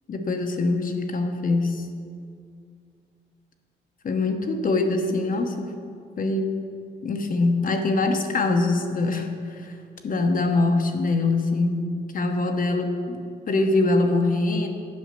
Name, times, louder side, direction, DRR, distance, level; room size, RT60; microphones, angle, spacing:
voice 1, 0.1-1.9 4.0-5.7 6.2-6.5 7.0-9.8 10.0-11.8 12.1-14.7, left 2 dB, 45° left, 4 dB, 1.0 m, -23 dB
8.5 x 5.5 x 7.5 m, 2.3 s
cardioid pair, 90°, 20 cm